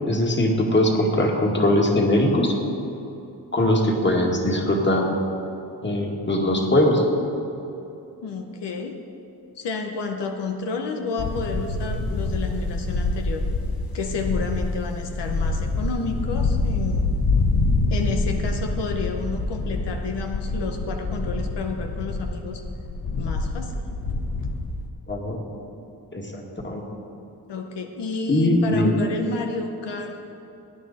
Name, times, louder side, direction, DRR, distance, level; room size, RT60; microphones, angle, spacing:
voice 1, 0.1-2.6 3.5-5.1 5.8-7.0 25.1-25.4 26.1-26.8 28.3-28.9, left 1 dB, 25° left, 0 dB, 2.1 m, -21 dB
voice 2, 8.2-9.0 9.5-13.4 13.9-17.1 17.9-22.6 23.2-23.8 27.5-30.3, left 4 dB, 85° left, 3 dB, 1.0 m, -30 dB
sound 1, 11.2-24.9, left 2 dB, 60° left, 1.4 m, -26 dB
17.5 x 9.6 x 4.2 m, 2.9 s
cardioid pair, 75°, 41 cm